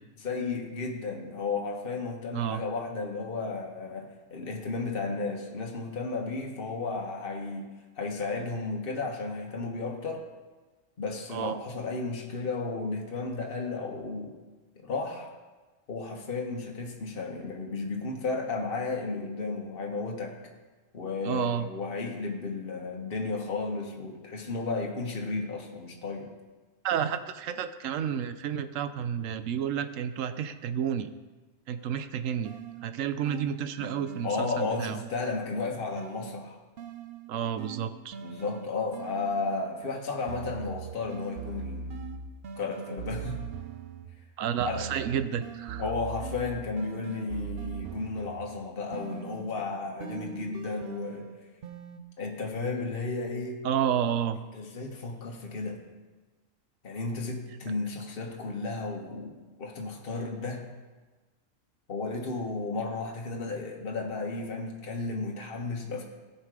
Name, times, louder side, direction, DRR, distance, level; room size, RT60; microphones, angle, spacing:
voice 1, 0.2-7.7 7.9-10.2 11.0-14.4 14.8-15.3 15.9-20.3 20.9-26.3 34.2-36.6 38.2-42.0 42.6-43.4 44.7-44.9 45.8-51.3 52.2-53.6 54.5-55.8 56.8-60.7 61.9-66.0, left 3 dB, 45° left, 0 dB, 1.4 m, -33 dB
voice 2, 21.2-21.7 26.8-31.1 31.7-32.6 32.8-35.0 37.3-38.2 44.4-45.8 53.6-54.4, right 9 dB, 75° right, 11 dB, 1.0 m, -30 dB
sound 1, 32.2-35.4 36.0-39.7 40.3-44.2 44.6-48.6 48.9-52.0, right 6 dB, 55° right, 0.7 m, -41 dB
16.5 x 5.7 x 4.8 m, 1.2 s
omnidirectional pair, 1.4 m